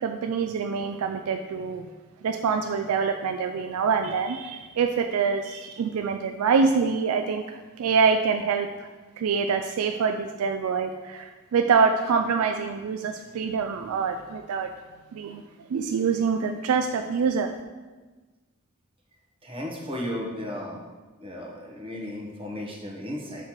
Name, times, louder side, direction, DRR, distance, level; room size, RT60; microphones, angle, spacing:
voice 1, 0.0-1.9 2.2-8.9 9.2-14.7 15.1-15.4 15.7-17.5, right 5 dB, 85° right, 6 dB, 0.4 m, -25 dB
voice 2, 19.4-20.8 21.2-23.5, left 1 dB, 25° right, -2 dB, 1.1 m, -35 dB
6.5 x 3.1 x 5.6 m, 1.3 s
head